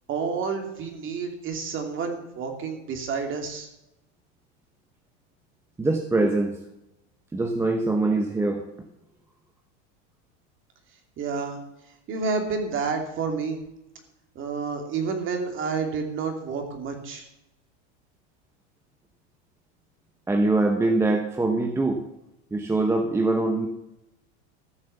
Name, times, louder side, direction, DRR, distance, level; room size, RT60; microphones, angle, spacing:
voice 1, 0.1-3.7 11.2-11.6 12.1-13.6 14.3-17.3, right 5 dB, 35° right, 4 dB, 2.6 m, -29 dB
voice 2, 5.8-6.6 7.3-8.6 20.3-22.0 22.5-23.7, right 2 dB, 10° right, 5 dB, 0.8 m, -23 dB
14.0 x 6.2 x 7.0 m, 0.89 s
supercardioid pair, 130°, 35 cm